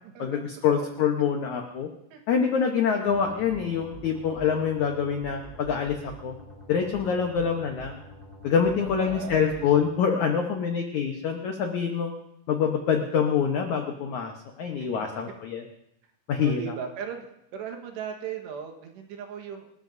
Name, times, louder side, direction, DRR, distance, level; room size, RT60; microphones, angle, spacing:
voice 1, 0.2-1.9 2.3-6.3 6.7-8.0 8.4-12.1 12.5-15.6 16.3-16.7, left 7 dB, 90° left, 3 dB, 1.6 m, -25 dB
sound 1, 3.1-9.9, right 1 dB, 15° left, 2.6 m, -46 dB
voice 2, 8.8-9.6 14.8-15.1 16.4-17.3 17.5-19.7, right 7 dB, 80° right, 4 dB, 3.5 m, -37 dB
26.5 x 13.5 x 2.7 m, 0.79 s
omnidirectional pair, 5.0 m